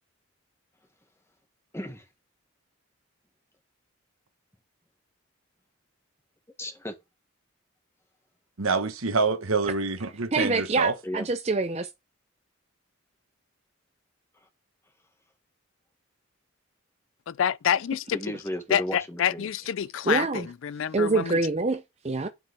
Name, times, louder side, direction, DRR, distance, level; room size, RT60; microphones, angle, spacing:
voice 1, 1.7-2.1 6.6-6.9 11.0-11.3 18.1-19.5, left 1 dB, 15° left, 1.6 m, -34 dB
voice 2, 8.6-10.9, right 4 dB, 90° right, 1.3 m, -26 dB
voice 3, 10.3-11.9 20.1-20.5 20.9-22.3, right 3 dB, 30° right, 0.5 m, -25 dB
voice 4, 17.3-18.2 18.7-21.4, left 9 dB, 70° left, 0.4 m, -27 dB
9.3 x 7.4 x 3.5 m
head